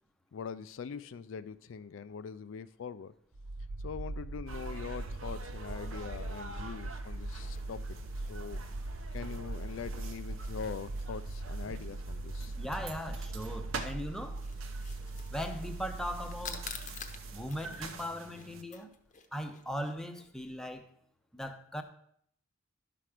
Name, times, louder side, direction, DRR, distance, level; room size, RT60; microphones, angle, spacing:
voice 1, 0.3-3.1 3.8-7.8 8.2-8.6 9.1-12.5, left 6 dB, 70° left, 13 dB, 0.4 m, -42 dB
sound 1, 3.3-18.1, right 2 dB, 45° right, 0.5 m, -40 dB
sound 2, 4.5-18.6, right 4 dB, 90° right, 0.9 m, -47 dB
sound 3, 5.9-20.3, left 6 dB, 40° left, 0.8 m, -52 dB
voice 2, 12.5-14.4 15.3-16.7 17.3-18.9 19.3-20.9 21.3-21.8, equal, 5° left, 5 dB, 0.7 m, -39 dB
11.5 x 5.9 x 4.9 m, 0.66 s
head